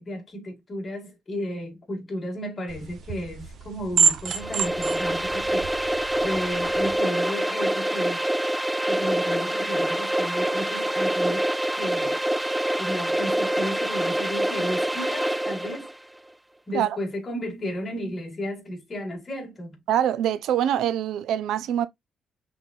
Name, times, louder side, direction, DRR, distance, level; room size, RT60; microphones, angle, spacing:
voice 1, 0.0-8.3 8.9-11.4 11.8-12.2 12.8-15.9 16.7-19.8, equal, 30° left, 2.1 m, -33 dB
sound 1, 2.7-7.0, right 6 dB, 65° right, 0.8 m, -28 dB
sound 2, 4.3-15.9, right 1 dB, 5° right, 0.3 m, -26 dB
voice 2, 19.9-21.9, right 10 dB, 80° right, 0.5 m, -24 dB
5.5 x 3.8 x 2.5 m
cardioid pair, 110°, 0 cm